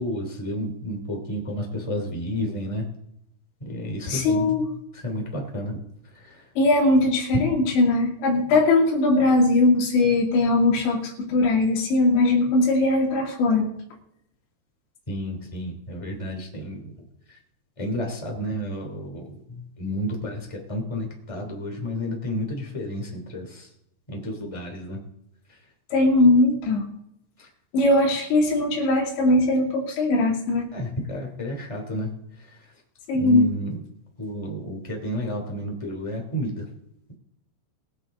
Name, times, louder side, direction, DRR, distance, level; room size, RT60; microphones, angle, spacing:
voice 1, 0.0-2.9 3.6-4.7 4.9-5.8 6.1-6.4 15.1-16.9 17.3-17.4 17.8-23.7 24.1-25.0 27.4-27.5 30.7-32.1 32.4-32.7 33.1-33.8 34.2-36.7, equal, 10° left, 1 dB, 1.9 m, -31 dB
voice 2, 4.1-4.7 6.6-13.7 25.9-26.8 27.7-30.7 33.1-33.5, left 2 dB, 65° left, 0 dB, 4.7 m, -20 dB
23.0 x 7.6 x 3.9 m, 0.77 s
omnidirectional pair, 5.8 m